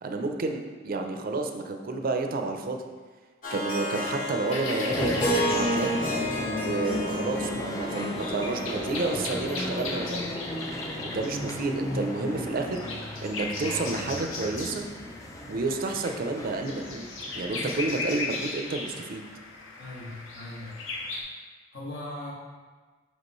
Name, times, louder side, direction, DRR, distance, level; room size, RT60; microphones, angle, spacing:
voice 1, 0.0-2.8 3.5-5.9 6.6-10.3 11.0-12.8 13.2-14.8 15.5-17.1 17.3-19.2, right 3 dB, 50° right, 4 dB, 0.5 m, -30 dB
Harp, 3.4-10.6, equal, 45° left, 1.2 m, -32 dB
sound 1, 4.5-21.2, left 3 dB, 90° left, 0.9 m, -38 dB
sound 2, 4.9-18.2, left 1 dB, 15° left, 0.4 m, -35 dB
voice 2, 17.5-17.8 19.8-20.8 21.7-22.3, left 1 dB, 70° left, -5 dB, 1.6 m, -39 dB
5.9 x 5.2 x 3.1 m, 1.4 s
head